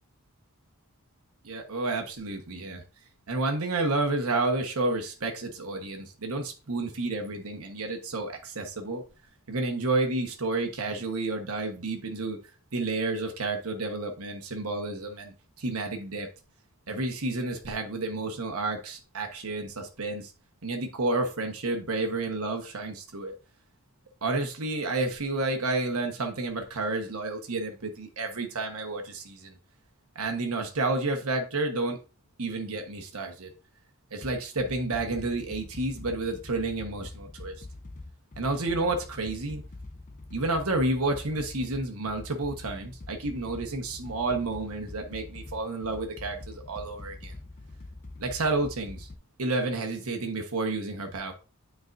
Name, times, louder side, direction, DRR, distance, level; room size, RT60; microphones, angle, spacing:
voice 1, 1.4-2.8 3.3-9.0 9.5-12.4 12.7-16.3 16.9-20.3 20.6-23.3 24.2-29.6 30.1-32.0 32.4-33.5 34.1-37.6 38.4-39.6 40.3-47.3 48.2-49.1 49.4-51.3, right 2 dB, 85° right, 1.2 m, -30 dB
sound 1, 34.2-49.2, left 2 dB, 35° left, 0.6 m, -44 dB
9.2 x 4.7 x 2.6 m
head